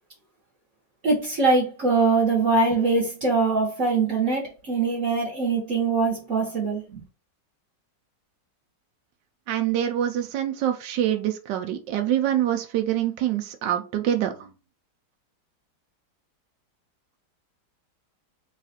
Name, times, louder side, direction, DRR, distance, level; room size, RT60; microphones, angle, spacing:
voice 1, 1.0-7.0, right 3 dB, 50° right, 1.4 m, -23 dB
voice 2, 9.5-14.5, right 11 dB, 85° right, 1.3 m, -25 dB
4.1 x 2.4 x 4.1 m
omnidirectional pair, 1.9 m